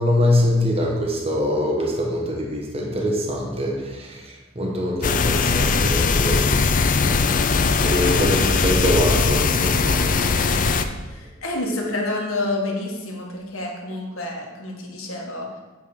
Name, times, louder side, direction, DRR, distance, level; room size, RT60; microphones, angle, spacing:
voice 1, 0.0-6.5 7.8-10.0, left 1 dB, 30° right, -1 dB, 1.1 m, -23 dB
sound 1, 5.0-10.9, left 4 dB, 40° left, 0.5 m, -20 dB
voice 2, 11.1-15.5, left 2 dB, 80° left, -1 dB, 1.7 m, -28 dB
8.5 x 3.7 x 6.4 m, 1.2 s
head